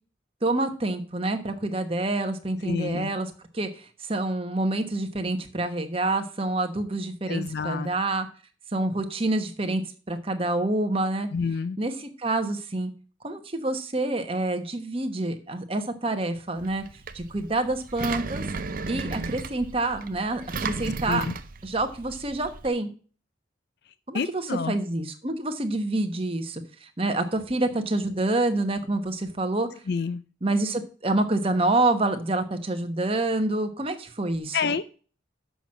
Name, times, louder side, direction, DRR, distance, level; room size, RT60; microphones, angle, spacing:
voice 1, 0.4-8.3 8.7-11.3 11.8-12.9 13.2-16.8 17.1-18.4 18.9-21.3 21.6-22.9 24.1-29.7 30.4-34.6, right 2 dB, 30° right, 6 dB, 1.1 m, -27 dB
voice 2, 2.6-3.1 7.3-7.9 11.3-11.8 21.1-21.3 24.1-24.7 29.9-30.2 34.5-34.8, left 5 dB, 55° left, 14 dB, 0.4 m, -28 dB
Engine, 16.6-22.7, right 3 dB, 45° right, 0.7 m, -35 dB
7.1 x 6.0 x 7.4 m, 0.39 s
head